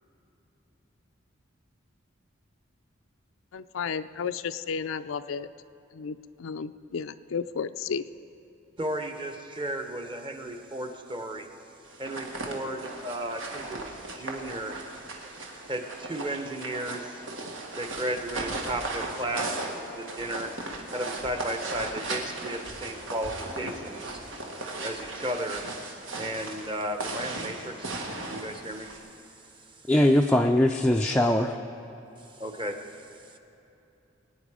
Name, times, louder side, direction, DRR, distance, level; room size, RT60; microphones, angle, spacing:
voice 1, 3.5-5.5 5.9-8.0, left 6 dB, 85° left, 11 dB, 0.4 m, -33 dB
voice 2, 8.8-11.5 12.0-14.8 15.7-17.2 17.8-20.7 20.9-24.2 24.8-25.7 26.2-28.0 28.3-28.9 32.4-32.8, right 1 dB, 25° right, 6 dB, 1.0 m, -34 dB
sound 1, 11.9-29.0, right 2 dB, 80° right, 1.8 m, -37 dB
voice 3, 29.9-31.6, left 1 dB, 5° left, 2 dB, 0.4 m, -21 dB
22.5 x 9.5 x 4.9 m, 2.9 s
head